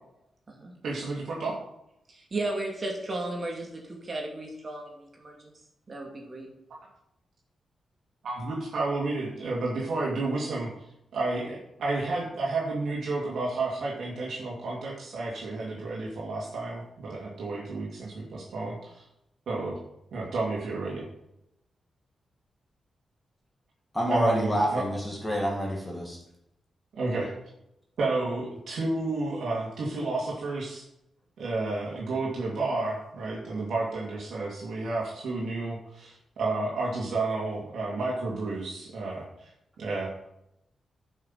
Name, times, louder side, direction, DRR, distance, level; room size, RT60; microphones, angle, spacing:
voice 1, 0.8-1.5 8.2-10.7 11.1-19.1 19.5-19.8 20.1-21.0 24.1-24.8 26.9-27.3 28.0-30.9 31.4-39.5 39.8-40.1, right 3 dB, 70° right, -3 dB, 2.5 m, -31 dB
voice 2, 2.1-5.5 5.9-6.5, right 2 dB, 35° right, 0 dB, 2.4 m, -35 dB
voice 3, 23.9-26.2, equal, 10° left, -2 dB, 2.4 m, -28 dB
11.0 x 6.4 x 5.7 m, 0.82 s
wide cardioid pair, 145°, 0 cm